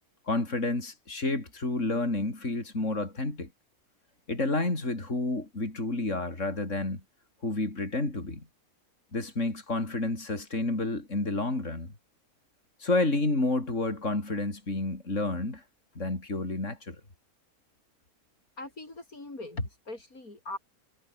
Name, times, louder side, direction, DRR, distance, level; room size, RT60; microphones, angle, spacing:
voice 1, 0.3-3.5 4.3-7.0 7.4-8.5 9.1-11.9 12.8-15.6 16.0-17.0, left 2 dB, 50° left, 5.4 m, -30 dB
voice 2, 18.6-20.6, left 2 dB, 70° left, 5.9 m, -39 dB
omnidirectional pair, 1.6 m